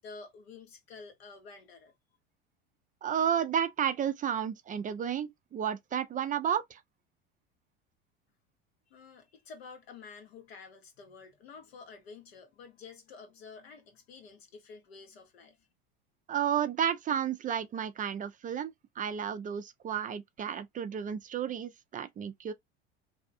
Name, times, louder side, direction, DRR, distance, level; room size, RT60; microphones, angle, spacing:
voice 1, 0.0-1.9 8.9-15.6, left 4 dB, 90° left, 1.0 m, -50 dB
voice 2, 3.0-6.8 16.3-22.5, right 8 dB, 25° right, 0.3 m, -32 dB
2.7 x 2.4 x 2.5 m
hypercardioid pair, 90°, 30 cm